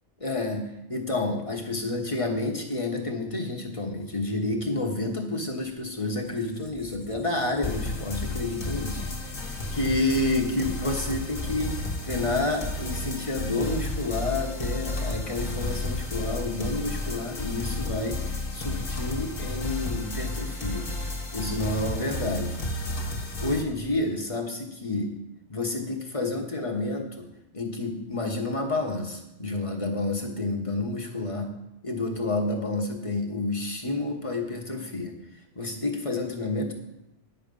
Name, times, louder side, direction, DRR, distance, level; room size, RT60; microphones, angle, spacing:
voice 1, 0.2-9.1 9.7-11.7 12.0-18.2 18.5-20.9 21.3-22.6 23.4-25.1 25.5-27.3 27.5-31.5 31.8-35.1 35.5-36.7, left 2 dB, 30° left, 1 dB, 1.2 m, -29 dB
Squeak, 5.8-13.4, left 2 dB, ahead, 1.0 m, -46 dB
sound 1, 7.6-23.6, left 2 dB, 50° left, 1.7 m, -32 dB
9.8 x 6.9 x 5.3 m, 0.88 s
omnidirectional pair, 1.2 m